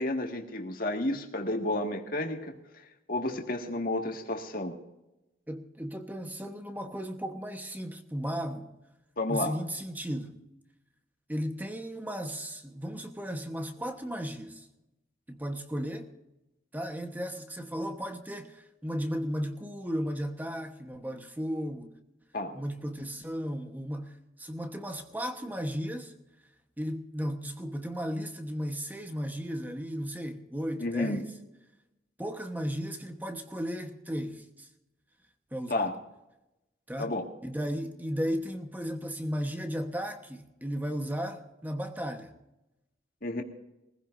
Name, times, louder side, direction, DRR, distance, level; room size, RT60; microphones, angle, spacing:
voice 1, 0.0-2.5 3.1-4.8 9.2-9.5 22.3-22.6 30.8-31.2 35.7-35.9 37.0-37.3 43.2-43.4, left 2 dB, 50° left, 1.9 m, -31 dB
voice 2, 5.5-8.7 9.3-10.4 11.3-14.7 15.3-16.1 16.7-21.9 22.5-26.1 26.8-31.3 32.2-34.7 35.5-35.9 36.9-37.1 37.4-42.3, equal, 10° right, 1.2 m, -35 dB
23.0 x 15.5 x 2.7 m
head